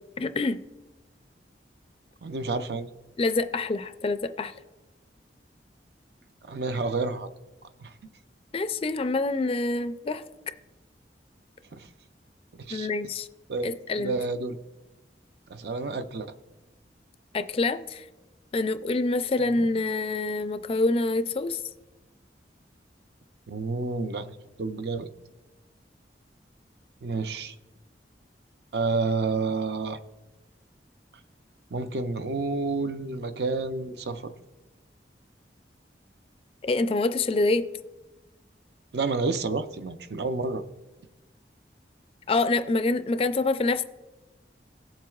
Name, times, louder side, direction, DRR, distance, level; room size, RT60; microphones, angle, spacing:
voice 1, 0.2-0.6 3.2-4.5 8.5-10.2 12.7-13.3 13.6-14.1 17.3-18.1 18.5-21.6 36.6-37.6 42.3-43.8, left 3 dB, 30° left, 11 dB, 0.3 m, -26 dB
voice 2, 2.2-2.9 6.4-7.3 7.8-7.9 11.7-11.9 12.5-12.9 13.5-14.6 15.5-16.3 19.4-19.7 23.5-25.1 27.0-27.6 28.7-30.0 31.7-34.3 38.9-40.6, right 3 dB, 65° right, 10 dB, 0.5 m, -30 dB
17.0 x 7.4 x 2.4 m, 1.1 s
head